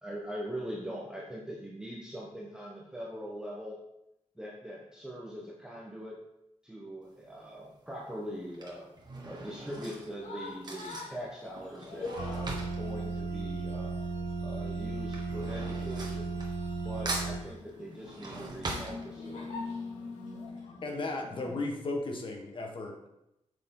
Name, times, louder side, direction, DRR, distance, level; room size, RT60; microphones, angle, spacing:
voice 1, 0.0-3.8 4.3-6.2 6.6-8.9 9.2-13.9 14.4-16.4 16.8-19.4, equal, 5° right, -4 dB, 1.1 m, -42 dB
Drawer open or close / Cutlery silverware, 7.1-7.4 8.3-14.2 14.4-16.8 17.1-19.6 20.0-20.1 20.3-20.4, right 2 dB, 35° right, 1.5 m, -41 dB
sound 1, 9.5-21.6, left 3 dB, 85° left, 2.3 m, -45 dB
sound 2, 12.2-17.4, right 4 dB, 65° right, 1.1 m, -35 dB
voice 2, 20.8-23.1, left 2 dB, 45° left, 2 dB, 1.4 m, -35 dB
8.4 x 6.7 x 3.8 m, 0.86 s
wide cardioid pair, 170°, 12 cm